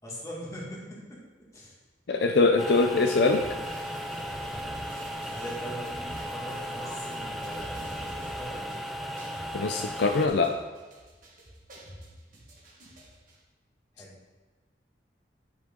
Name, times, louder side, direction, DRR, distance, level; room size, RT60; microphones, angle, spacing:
voice 1, 0.0-1.2 1.5-1.7 5.3-8.7 13.9-14.1, equal, 20° left, -5 dB, 2.1 m, -41 dB
voice 2, 2.1-3.4 9.5-10.6, left 3 dB, 65° left, 5 dB, 0.5 m, -23 dB
sound 1, 2.6-10.3, equal, ahead, 0.6 m, -36 dB
sound 2, 3.3-13.3, right 1 dB, 50° right, 1.7 m, -46 dB
10.0 x 5.7 x 3.7 m, 1.3 s
head